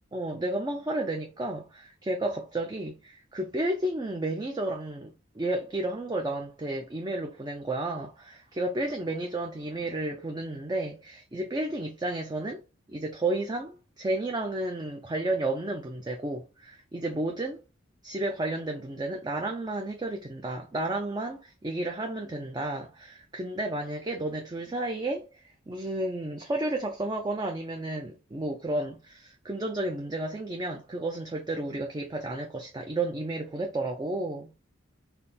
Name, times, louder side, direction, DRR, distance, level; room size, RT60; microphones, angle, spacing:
voice 1, 0.1-12.6 12.9-17.6 18.0-34.5, right 2 dB, 20° right, 0.4 m, -32 dB
4.2 x 2.0 x 3.5 m
head